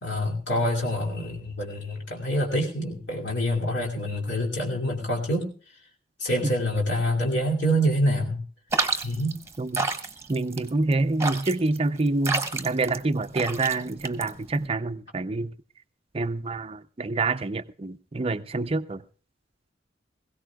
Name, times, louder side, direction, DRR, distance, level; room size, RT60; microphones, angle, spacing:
voice 1, 0.0-5.5 6.2-8.4 9.0-9.4, equal, 65° left, 2.7 m, -26 dB
sound 1, 8.7-14.7, right 3 dB, 15° right, 1.1 m, -30 dB
voice 2, 9.6-9.9 10.3-15.5 16.1-19.0, right 3 dB, 30° right, 0.5 m, -27 dB
21.5 x 16.5 x 2.4 m
head